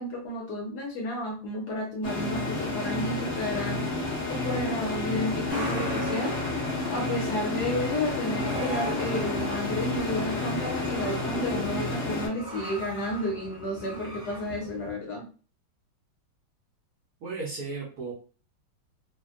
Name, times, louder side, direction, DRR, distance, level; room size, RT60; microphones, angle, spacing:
voice 1, 0.0-3.8 4.3-6.3 6.9-15.2, left 1 dB, 65° left, -1 dB, 1.1 m, -32 dB
sound 1, 2.0-12.3, left 2 dB, 5° left, 0.7 m, -30 dB
Truck, 5.5-11.7, equal, 40° left, 1.3 m, -40 dB
sound 2, 7.5-14.9, equal, 45° right, 0.7 m, -41 dB
voice 2, 17.2-18.1, right 3 dB, 65° right, -4 dB, 1.0 m, -34 dB
3.3 x 2.1 x 2.4 m, 0.38 s
omnidirectional pair, 2.2 m